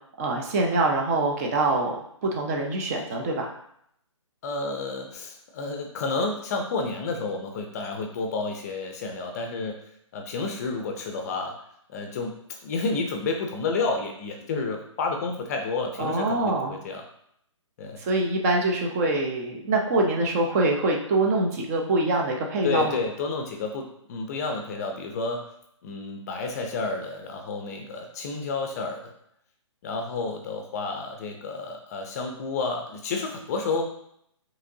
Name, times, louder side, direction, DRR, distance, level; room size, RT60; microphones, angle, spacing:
voice 1, 0.2-2.0 2.2-3.5 16.0-16.8 18.0-23.0, right 2 dB, 30° right, 1 dB, 0.6 m, -24 dB
voice 2, 4.4-9.8 10.1-11.6 11.9-17.0 17.8-18.0 22.6-25.5 25.8-29.1 29.8-33.8, left 3 dB, 30° left, 3 dB, 0.5 m, -30 dB
4.9 x 3.0 x 2.7 m, 0.72 s
hypercardioid pair, 145°, 16 cm